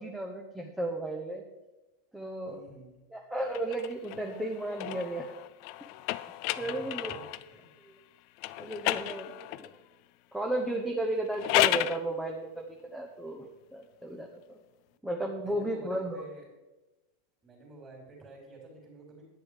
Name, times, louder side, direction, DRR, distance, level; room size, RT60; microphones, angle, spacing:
voice 1, 0.0-1.4 2.1-2.6 3.1-5.3 6.6-7.1 8.6-9.7 10.3-12.5 12.9-14.3 15.0-16.2, right 1 dB, 5° right, 1 dB, 0.9 m, -34 dB
voice 2, 2.4-3.0 6.5-7.2 7.5-7.8 15.4-16.5 17.4-19.2, right 2 dB, 20° right, -3 dB, 3.3 m, -50 dB
sound 1, 3.5-7.5 8.4-9.8 11.2-12.0, left 17 dB, 45° left, 0.4 m, -32 dB
10.5 x 9.1 x 4.9 m, 1.1 s
supercardioid pair, 155°, 0 cm